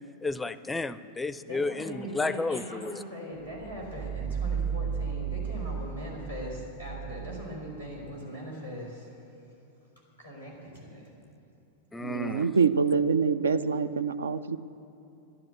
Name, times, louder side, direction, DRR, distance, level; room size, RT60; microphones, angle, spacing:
voice 1, 0.2-3.0 11.9-12.5, left 3 dB, 10° left, 15 dB, 0.4 m, -32 dB
voice 2, 1.4-9.1 10.2-11.1, equal, 85° right, -4 dB, 4.1 m, -40 dB
sound 1, 3.4-8.1, right 7 dB, 25° right, 1.0 m, -34 dB
voice 3, 12.0-14.6, right 5 dB, 70° right, 13 dB, 0.5 m, -25 dB
12.0 x 10.5 x 7.9 m, 2.9 s
figure-of-eight pair, 90°, 0 cm